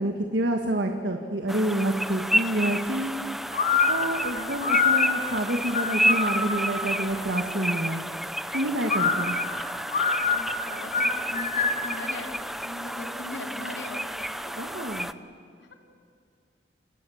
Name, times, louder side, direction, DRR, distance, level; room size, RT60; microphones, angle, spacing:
voice 1, 0.0-3.3 3.9-8.0 8.5-9.4 14.6-15.1, right 1 dB, 75° right, 3 dB, 1.7 m, -28 dB
sound 1, 1.5-15.1, equal, ahead, 0.7 m, -31 dB
sound 2, 3.5-6.9 8.8-12.0, left 4 dB, 50° left, 3.1 m, -25 dB
voice 2, 10.2-14.7 15.1-15.2 15.6-15.7, left 2 dB, 85° left, 2 dB, 3.2 m, -40 dB
29.5 x 26.5 x 7.2 m, 2.2 s
head